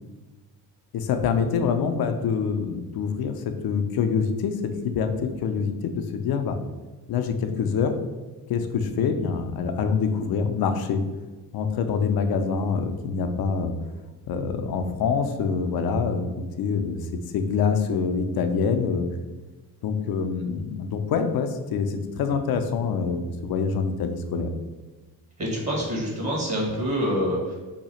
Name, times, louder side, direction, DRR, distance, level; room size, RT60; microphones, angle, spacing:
voice 1, 0.9-4.6 4.8-6.6 7.1-7.9 8.5-11.0 11.5-13.7 14.3-16.3 16.6-17.0 17.3-19.0 19.8-24.5, left 6 dB, 55° left, 7 dB, 0.5 m, -25 dB
voice 2, 25.4-27.6, equal, 35° right, -3 dB, 1.3 m, -26 dB
2.8 x 2.4 x 4.2 m, 1.2 s
supercardioid pair, 60°, 44 cm